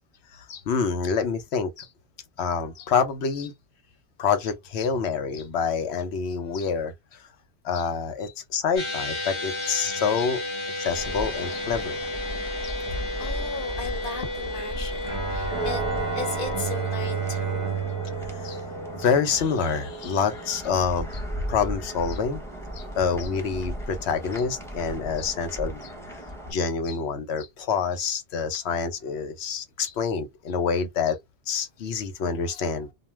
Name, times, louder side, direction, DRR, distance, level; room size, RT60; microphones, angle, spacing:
voice 1, 0.3-1.9 2.4-3.5 4.2-7.2 7.6-10.4 10.8-12.0 12.6-12.8 18.4-18.6 18.9-21.2 21.5-22.4 22.7-26.2 26.5-31.2 31.5-32.9, left 6 dB, 80° left, 1.0 m, -27 dB
sound 1, 8.8-21.3, left 2 dB, 30° left, 0.9 m, -34 dB
sound 2, 10.9-26.5, right 1 dB, 5° left, 0.7 m, -35 dB
voice 2, 13.2-15.8 16.1-17.6 22.8-22.9, left 4 dB, 55° left, 1.1 m, -36 dB
Bowed string instrument, 15.0-19.5, right 6 dB, 40° right, 0.6 m, -32 dB
2.5 x 2.2 x 3.1 m
omnidirectional pair, 1.1 m